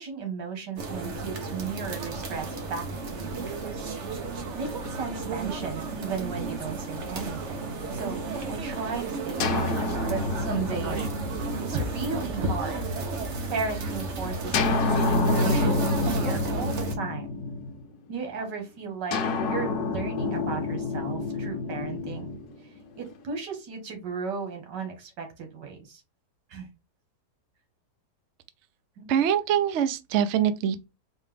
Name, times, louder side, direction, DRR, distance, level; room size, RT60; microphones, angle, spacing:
voice 1, 0.0-2.9 3.1-3.4 3.7-3.9 4.5-11.3 11.6-12.8 13.5-17.3 18.1-19.2 19.5-22.4 23.0-26.0 26.5-26.7 29.0-29.1, right 5 dB, 85° right, 2.0 m, -35 dB
sound 1, 0.8-16.9, right 3 dB, 45° right, 1.2 m, -32 dB
sound 2, 9.4-13.2 14.5-18.1 19.1-23.2, left 3 dB, 70° left, 1.3 m, -29 dB
voice 2, 29.1-30.9, right 9 dB, 70° right, 0.7 m, -24 dB
4.5 x 3.1 x 3.4 m
omnidirectional pair, 1.8 m